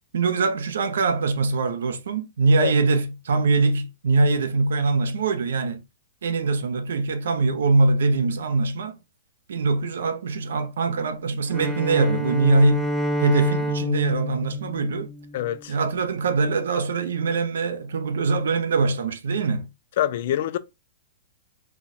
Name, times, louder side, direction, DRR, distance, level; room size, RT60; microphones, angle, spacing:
voice 1, 0.1-5.8 6.2-9.0 9.5-12.9 13.2-15.1 15.7-19.7, right 3 dB, 80° right, 0.8 m, -22 dB
Bowed string instrument, 11.5-15.7, equal, 5° right, 0.6 m, -28 dB
voice 2, 15.3-15.8 20.0-20.6, left 11 dB, 60° left, 0.5 m, -25 dB
4.5 x 2.3 x 4.1 m
hypercardioid pair, 140°, 0 cm